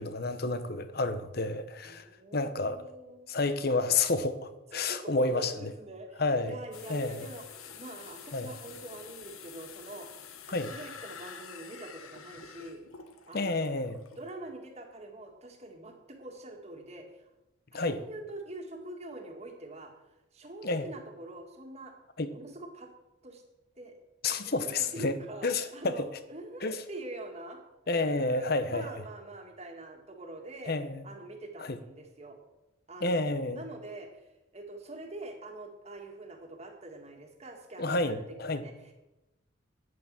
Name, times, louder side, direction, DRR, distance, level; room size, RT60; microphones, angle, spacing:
voice 1, 0.0-2.1 2.3-2.8 3.3-5.7 6.2-6.5 6.9-7.3 8.3-8.5 10.5-10.7 13.3-14.0 17.7-18.0 20.6-20.9 22.2-22.3 24.2-25.1 25.4-26.1 26.6-26.8 27.9-28.8 30.7-31.0 31.7-31.8 33.0-33.6 37.8-38.6, left 3 dB, 45° left, 0.9 m, -30 dB
voice 2, 1.8-3.4 4.7-12.8 13.3-13.7 14.2-17.3 17.7-21.9 22.3-22.9 23.2-23.4 23.8-24.0 24.3-27.6 27.8-30.7 31.0-32.4 32.9-38.9, right 2 dB, 30° right, 2.0 m, -45 dB
sound 1, 6.7-14.3, left 7 dB, 90° left, 1.3 m, -48 dB
9.7 x 9.5 x 7.6 m
head